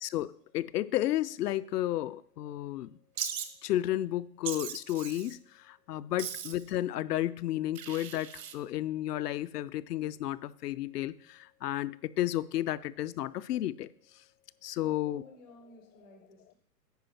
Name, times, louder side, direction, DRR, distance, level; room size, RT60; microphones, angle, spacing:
voice 1, 0.0-2.9 3.6-13.9 14.6-15.2, left 14 dB, 70° left, 0.5 m, -32 dB
Wild animals, 3.2-3.5 4.4-5.3 6.2-6.7 7.7-8.5, right 8 dB, 85° right, 1.1 m, -38 dB
voice 2, 14.7-16.5, left 1 dB, 10° left, 0.4 m, -54 dB
9.4 x 4.8 x 5.7 m
hypercardioid pair, 145°, 49 cm